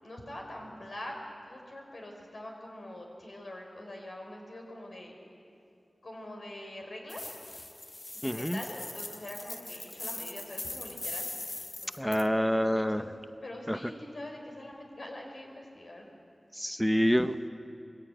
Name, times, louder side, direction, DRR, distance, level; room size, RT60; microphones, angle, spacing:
voice 1, 0.0-5.1 6.0-7.2 8.1-11.3 11.8-13.1 13.4-16.1, left 1 dB, 70° left, 1 dB, 4.4 m, -44 dB
sound 1, 7.1-12.3, left 2 dB, 45° left, 0.8 m, -41 dB
voice 2, 8.2-8.6 12.0-13.0 13.7-13.8 16.5-17.5, equal, 5° left, 10 dB, 0.7 m, -27 dB
21.5 x 15.0 x 8.9 m, 2.6 s
cardioid pair, 45°, 0 cm